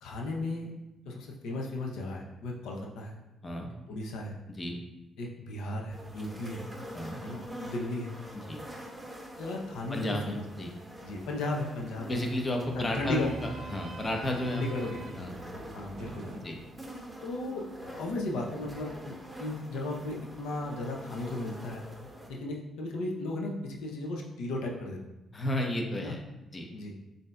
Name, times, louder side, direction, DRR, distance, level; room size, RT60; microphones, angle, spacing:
voice 1, 0.0-0.7 1.1-3.2 3.9-4.4 5.2-6.7 7.2-8.1 9.4-10.4 11.0-12.2 12.7-13.3 14.5-15.0 15.7-16.3 17.2-21.8 22.3-25.0 26.0-26.1 26.7-26.9, left 2 dB, 85° left, 0 dB, 0.6 m, -35 dB
sound 1, 5.9-22.3, right 1 dB, 10° right, 0.8 m, -46 dB
voice 2, 9.9-10.7 12.1-14.6 15.2-15.4 16.4-16.5 25.3-26.2 26.5-26.7, left 1 dB, 25° left, 1 dB, 0.7 m, -32 dB
sound 2, 10.9-16.4, right 2 dB, 55° right, 0.5 m, -45 dB
7.1 x 2.7 x 2.2 m, 1.0 s
cardioid pair, 90°, 0 cm